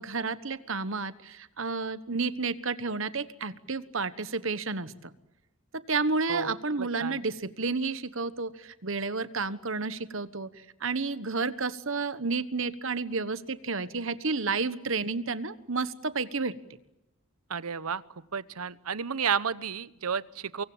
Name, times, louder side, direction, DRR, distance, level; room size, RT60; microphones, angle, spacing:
voice 1, 0.0-5.1 5.7-10.5 10.8-16.5, right 4 dB, 60° right, 14 dB, 1.3 m, -31 dB
voice 2, 6.8-7.2 17.5-18.0 18.3-20.6, right 6 dB, 85° right, 17 dB, 0.9 m, -31 dB
25.0 x 23.0 x 8.7 m, 0.91 s
head